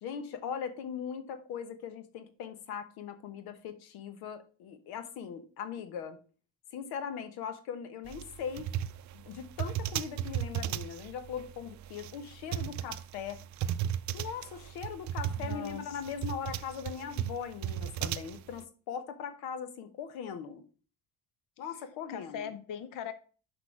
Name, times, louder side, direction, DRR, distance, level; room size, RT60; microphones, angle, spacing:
voice 1, 0.0-6.2 6.7-8.7 9.1-13.4 14.1-20.6 21.6-22.5, left 7 dB, 90° left, 10 dB, 1.1 m, -40 dB
sound 1, 8.1-18.6, right 10 dB, 50° right, 0.5 m, -36 dB
voice 2, 15.4-16.0 22.1-23.1, left 8 dB, 60° left, 12 dB, 0.8 m, -40 dB
6.3 x 5.3 x 5.9 m, 0.38 s
cardioid pair, 100°, 37 cm